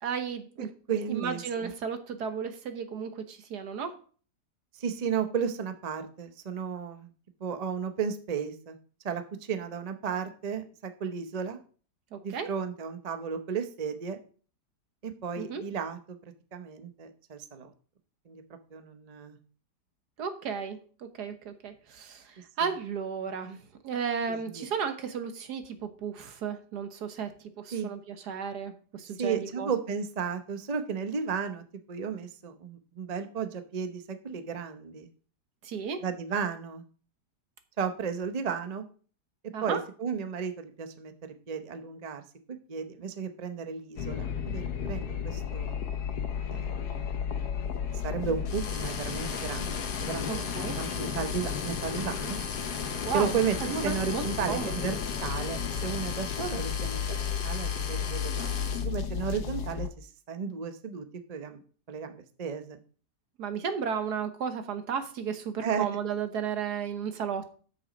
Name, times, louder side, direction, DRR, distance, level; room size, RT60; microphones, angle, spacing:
voice 1, 0.0-0.7 1.1-3.9 12.1-12.5 15.4-15.6 20.2-29.7 35.6-36.0 39.5-39.8 50.3-50.8 53.0-54.8 63.4-67.6, right 6 dB, 75° right, 8 dB, 1.6 m, -34 dB
voice 2, 0.6-1.7 4.7-7.1 7.4-8.8 9.0-11.6 12.2-14.2 15.0-16.2 16.5-17.7 18.3-18.4 18.7-19.4 22.6-22.7 24.3-24.7 27.7-27.9 29.2-35.1 36.0-36.9 37.8-38.8 39.6-45.8 46.5-47.2 48.0-50.5 50.8-52.4 53.1-57.2 57.4-58.5 58.8-61.6 61.9-62.8 65.6-65.8, right 6 dB, 35° right, 8 dB, 0.6 m, -34 dB
sound 1, 44.0-59.9, left 7 dB, 70° left, 1.4 m, -33 dB
sound 2, 48.5-58.8, left 5 dB, 40° left, 0.9 m, -38 dB
8.1 x 7.0 x 5.1 m, 0.42 s
omnidirectional pair, 1.8 m